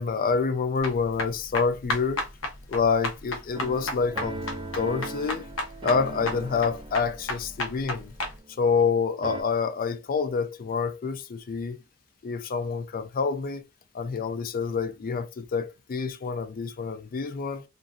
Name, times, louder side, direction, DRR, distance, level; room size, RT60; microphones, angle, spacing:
voice 1, 0.0-2.2 2.7-4.4 4.7-5.4 5.8-8.1 8.6-11.8 12.2-13.6 13.9-17.6, left 5 dB, 45° left, 0.4 m, -27 dB
sound 1, 0.8-8.3, left 2 dB, 70° left, 0.8 m, -33 dB
sound 2, 3.5-8.9 9.2-9.4, right 2 dB, 25° right, 0.4 m, -39 dB
2.6 x 2.5 x 2.4 m
head